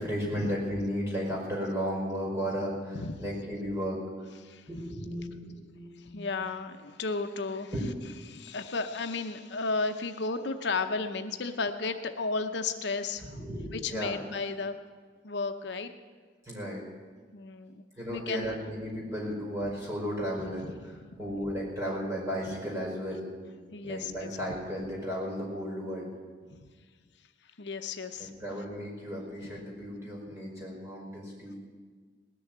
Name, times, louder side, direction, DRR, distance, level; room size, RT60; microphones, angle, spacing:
voice 1, 0.0-4.0 4.7-6.3 7.7-7.8 13.3-14.2 16.4-16.8 18.0-20.7 21.2-23.3 23.8-26.1 28.2-31.6, equal, 15° right, -3 dB, 5.1 m, -34 dB
voice 2, 2.9-3.3 4.4-4.7 6.0-7.7 8.3-13.4 13.7-14.7 15.2-15.9 17.3-17.8 18.1-18.5 20.6-21.4 23.7-24.3 26.5-26.6 27.6-28.3 29.4-29.5, left 3 dB, 70° left, 7 dB, 0.7 m, -34 dB
19.0 x 7.0 x 9.2 m, 1.5 s
head